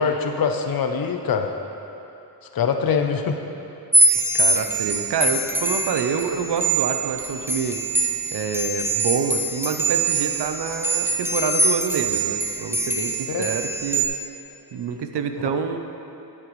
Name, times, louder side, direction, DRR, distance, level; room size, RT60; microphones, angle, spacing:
voice 1, 0.0-1.5 2.5-3.4 13.3-13.5, left 6 dB, 60° left, 5 dB, 0.6 m, -23 dB
sound 1, 3.9-14.1, right 2 dB, 5° right, 0.4 m, -23 dB
voice 2, 4.1-7.8 8.3-14.1 14.7-15.8, right 6 dB, 75° right, 7 dB, 0.7 m, -27 dB
9.9 x 8.7 x 3.1 m, 2.9 s
wide cardioid pair, 170°, 41 cm